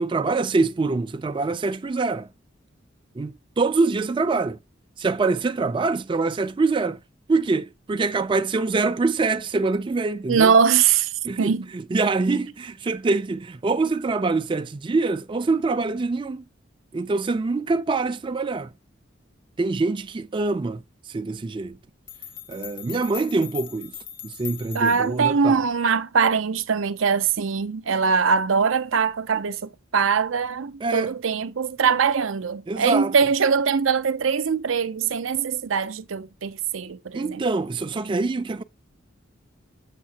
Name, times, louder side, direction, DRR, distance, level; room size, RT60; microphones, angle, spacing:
voice 1, 0.0-2.3 3.2-4.6 5.0-7.0 7.3-10.5 11.2-16.4 16.9-18.7 19.6-21.8 22.5-23.9 24.2-25.6 30.8-31.1 32.7-33.1 37.1-38.6, right 3 dB, 25° right, 0.4 m, -24 dB
voice 2, 10.3-11.1 11.4-11.7 24.7-37.4, right 6 dB, 85° right, 0.6 m, -22 dB
sound 1, 21.7-21.8 22.1-25.2, left 10 dB, 65° left, 1.1 m, -40 dB
7.3 x 6.5 x 2.8 m
head